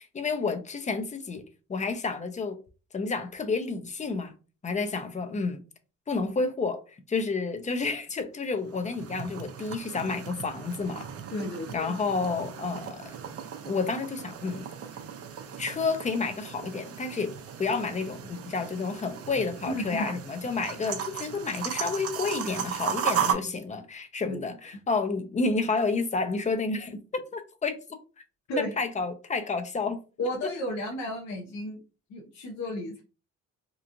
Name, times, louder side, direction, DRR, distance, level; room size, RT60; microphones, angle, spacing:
voice 1, 0.0-1.4 1.7-2.6 2.9-4.3 4.6-5.6 6.1-6.8 7.1-11.1 11.7-13.1 13.6-14.7 15.6-17.3 17.6-27.8 28.6-30.0, left 4 dB, 25° left, 0.5 m, -30 dB
sound 1, 8.5-23.3, right 8 dB, 50° right, 0.5 m, -36 dB
voice 2, 11.3-11.9 19.6-20.1 24.2-24.4 28.5-28.7 30.2-31.8 32.1-33.0, left 1 dB, 60° left, 0.7 m, -33 dB
3.0 x 2.4 x 2.5 m
cardioid pair, 90°, 30 cm